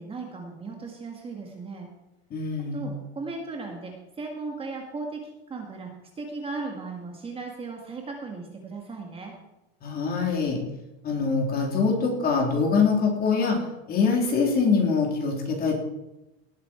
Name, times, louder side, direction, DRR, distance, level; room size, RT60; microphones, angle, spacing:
voice 1, 0.0-1.9 2.7-5.2 5.5-5.9 6.2-9.3, right 3 dB, 20° right, 1 dB, 1.9 m, -36 dB
voice 2, 2.3-2.9 9.8-10.6 11.0-13.6 13.9-15.7, left 5 dB, 30° left, 0 dB, 3.8 m, -24 dB
18.0 x 8.7 x 4.5 m, 0.96 s
supercardioid pair, 145°, 30 cm